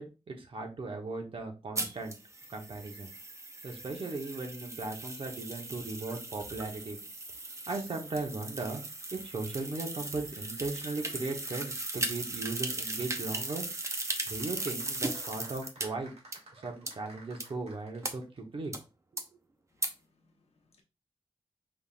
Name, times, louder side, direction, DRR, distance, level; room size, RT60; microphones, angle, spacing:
voice 1, 0.0-2.2 2.5-3.1 3.6-7.0 7.7-8.8 9.1-13.7 14.3-16.1 16.5-18.7, right 3 dB, 60° right, 1.1 m, -37 dB
sound 1, 1.8-15.9 16.3-16.4 16.9-17.0 17.4-17.5 18.0-18.1 18.7-18.8 19.2-19.3 19.8-19.9, right 2 dB, 30° right, 0.7 m, -38 dB
sound 2, 13.9-18.4 18.6-18.7, right 2 dB, 85° right, 1.4 m, -54 dB
voice 2, 19.7-20.8, left 3 dB, 85° left, 1.1 m, -70 dB
5.4 x 3.6 x 2.5 m
wide cardioid pair, 135°, 10 cm